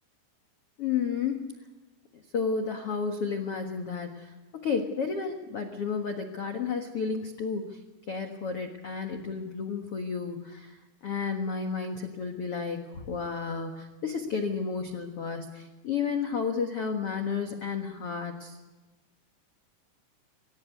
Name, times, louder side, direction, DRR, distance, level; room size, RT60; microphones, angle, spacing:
voice 1, 0.8-1.5 2.1-7.8 8.1-18.6, left 5 dB, 80° left, 4 dB, 1.3 m, -32 dB
25.0 x 16.0 x 9.5 m, 1.2 s
omnidirectional pair, 5.3 m